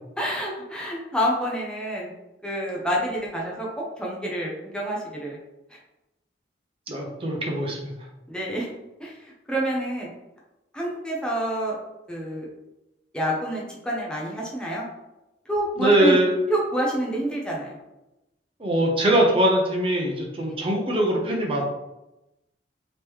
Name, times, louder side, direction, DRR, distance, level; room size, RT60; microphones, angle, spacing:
voice 1, 0.2-2.1 2.4-5.4 5.7-5.8 8.3-8.7 9.0-10.1 10.7-11.8 12.1-12.5 13.1-14.8 15.5-16.2 16.5-17.8, right 1 dB, 5° left, -3 dB, 0.6 m, -28 dB
voice 2, 6.9-7.9 15.8-16.3 18.6-21.6, right 1 dB, 30° right, 0 dB, 0.6 m, -22 dB
3.5 x 3.0 x 3.0 m, 0.96 s
head